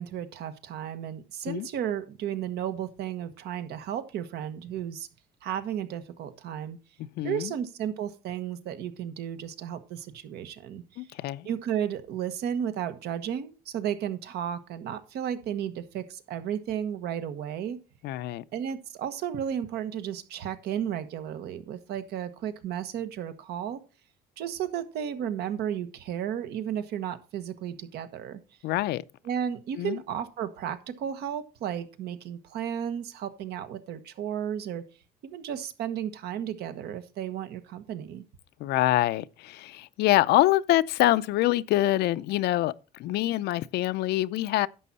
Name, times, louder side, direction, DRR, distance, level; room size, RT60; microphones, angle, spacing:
voice 1, 0.0-5.1 5.4-6.8 7.2-11.1 11.4-17.8 18.5-23.8 24.4-28.4 29.2-34.8 35.2-38.2, right 9 dB, 75° right, 1.4 m, -33 dB
voice 2, 7.2-7.5 11.0-11.5 18.0-18.4 28.6-29.0 29.8-30.0 38.6-42.7 43.0-44.7, left 15 dB, 75° left, 0.6 m, -25 dB
11.0 x 7.4 x 4.1 m
cardioid pair, 110°, 17 cm